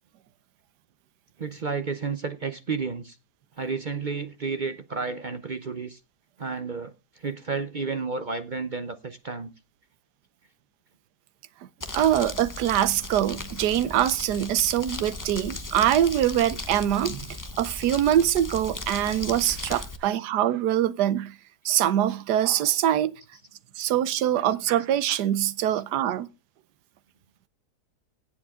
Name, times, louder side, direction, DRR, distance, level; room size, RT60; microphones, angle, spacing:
voice 1, 1.4-3.1 3.6-6.0 6.4-6.9 7.2-9.5 13.5-13.7 20.1-20.2 23.3-23.4 25.7-25.8, right 4 dB, 50° right, 0.5 m, -32 dB
Crumpling crinkling, 11.8-20.0, left 2 dB, 15° left, 0.8 m, -37 dB
voice 2, 11.9-17.3 17.6-21.3 21.6-23.1 23.8-26.3, right 11 dB, 70° right, 1.3 m, -24 dB
16.5 x 7.6 x 3.6 m
omnidirectional pair, 1.9 m